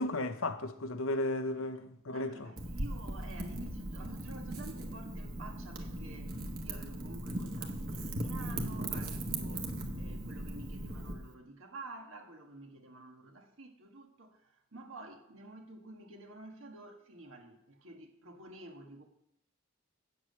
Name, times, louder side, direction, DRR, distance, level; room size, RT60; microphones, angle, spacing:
voice 1, 0.0-2.5, left 2 dB, 90° left, 0.8 m, -34 dB
voice 2, 2.1-9.7 10.0-19.0, right 2 dB, 85° right, 1.6 m, -50 dB
Wind / Fire, 2.6-11.1, right 1 dB, 45° right, 1.3 m, -38 dB
8.4 x 7.6 x 6.4 m
head